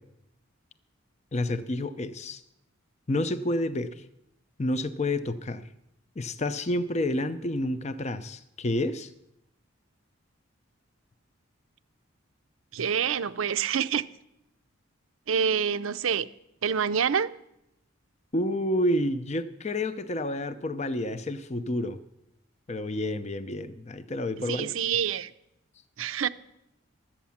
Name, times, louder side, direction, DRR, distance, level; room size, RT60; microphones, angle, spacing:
voice 1, 1.3-2.4 3.1-4.0 4.6-5.7 6.2-9.1 18.3-22.0 22.7-24.7, left 1 dB, 30° left, 0.5 m, -29 dB
voice 2, 12.7-14.1 15.3-16.3 16.6-17.3 24.5-25.3 26.0-26.3, right 7 dB, 70° right, 0.5 m, -26 dB
12.5 x 8.4 x 7.1 m
head